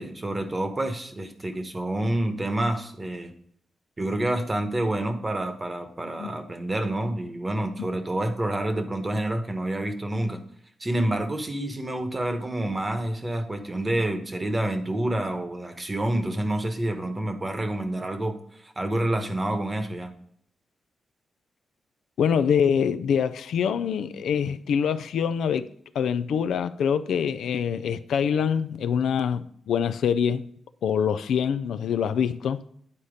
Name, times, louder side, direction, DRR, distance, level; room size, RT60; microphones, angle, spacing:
voice 1, 0.0-3.3 4.0-10.4 10.8-20.1, right 1 dB, 20° right, 1.0 m, -28 dB
voice 2, 22.2-25.7 25.9-30.4 30.8-32.6, left 7 dB, 90° left, 0.4 m, -25 dB
9.7 x 4.2 x 5.0 m
wide cardioid pair, 120°, 0 cm